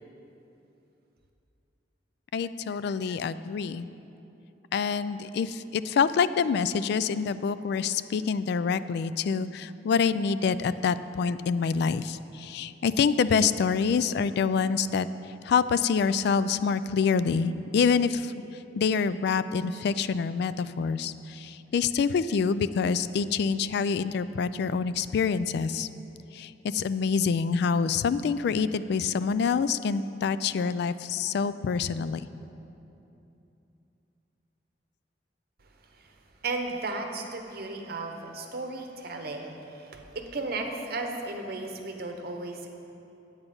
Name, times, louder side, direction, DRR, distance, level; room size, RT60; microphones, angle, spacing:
voice 1, 2.3-3.9 4.7-15.1 15.4-18.3 18.8-25.9 26.3-32.2, left 5 dB, 65° left, 14 dB, 0.3 m, -26 dB
voice 2, 36.4-42.7, right 3 dB, 60° right, 4 dB, 0.9 m, -35 dB
9.0 x 8.1 x 5.4 m, 2.9 s
head